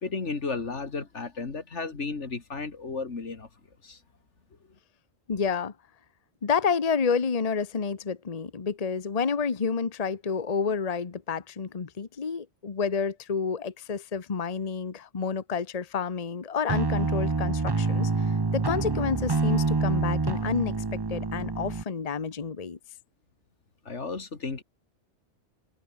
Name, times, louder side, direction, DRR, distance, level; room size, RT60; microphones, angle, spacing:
voice 1, 0.0-3.5 3.8-4.0 23.9-24.6, left 4 dB, 80° left, 2.6 m, -33 dB
voice 2, 5.3-5.7 6.4-22.8, left 5 dB, 35° left, 1.1 m, -29 dB
sound 1, 16.7-21.8, right 3 dB, 25° right, 0.8 m, -27 dB
omnidirectional pair, 1.2 m